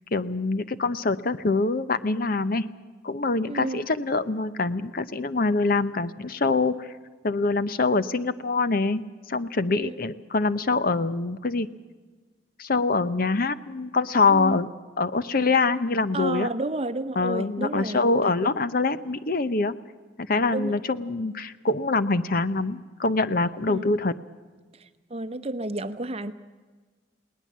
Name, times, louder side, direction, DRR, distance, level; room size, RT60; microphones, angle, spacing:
voice 1, 0.1-2.7 3.0-6.9 7.2-9.0 9.3-11.7 12.6-14.7 15.0-16.5 17.2-19.8 20.3-24.1, left 3 dB, 45° left, 13 dB, 0.7 m, -24 dB
voice 2, 3.5-3.8 9.8-9.9 14.3-14.6 16.1-18.0 20.5-20.7 23.7-23.9 25.1-26.3, right 2 dB, 30° right, 12 dB, 0.9 m, -30 dB
20.0 x 19.0 x 7.4 m, 1.4 s
head